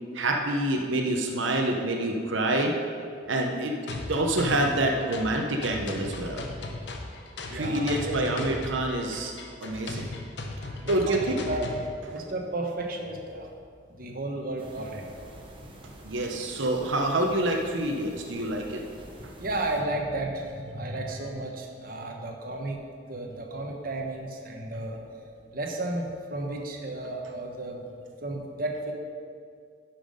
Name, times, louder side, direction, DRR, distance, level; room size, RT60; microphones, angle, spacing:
voice 1, 0.1-2.7 3.3-6.4 7.5-9.3 9.6-10.1 10.6-11.4 16.0-18.8, right 1 dB, 85° right, 2 dB, 0.9 m, -27 dB
sound 1, 3.9-11.9, left 2 dB, 60° left, 0.9 m, -37 dB
voice 2, 7.5-8.4 10.7-11.7 12.1-13.5 13.9-15.1 15.8-15.9 19.4-22.8 23.1-25.0 25.5-27.8 28.2-28.9, right 2 dB, 50° right, 1 dB, 1.0 m, -33 dB
sound 2, 14.6-19.8, right 1 dB, 30° right, 1.0 m, -48 dB
10.5 x 5.9 x 5.2 m, 2.2 s
head